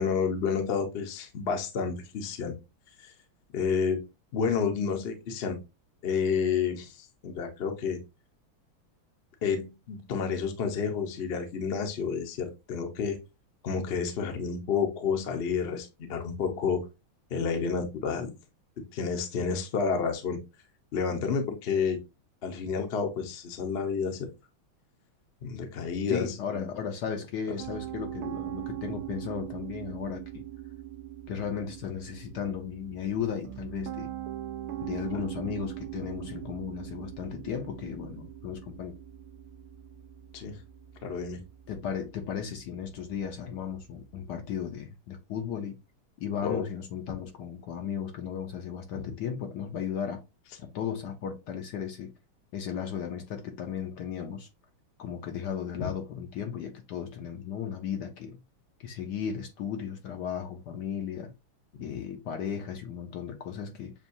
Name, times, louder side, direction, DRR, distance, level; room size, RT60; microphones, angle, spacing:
voice 1, 0.0-2.5 3.0-3.1 3.5-4.0 4.3-5.6 6.0-8.0 9.4-13.2 13.6-16.8 17.3-18.3 18.8-20.4 20.9-22.0 22.4-24.3 25.4-26.7 35.1-35.2 40.3-40.6 41.0-41.4 46.4-46.7 61.8-62.0, left 6 dB, 50° left, 0.7 m, -30 dB
voice 2, 26.1-30.4 31.3-34.1 34.8-39.0 41.7-45.8 46.2-50.2 50.6-52.1 52.5-54.5 55.0-58.4 58.8-61.3 61.8-63.9, left 8 dB, 70° left, 1.1 m, -35 dB
Piano, 27.6-44.7, right 13 dB, 75° right, 0.8 m, -41 dB
7.0 x 2.4 x 2.6 m
omnidirectional pair, 2.2 m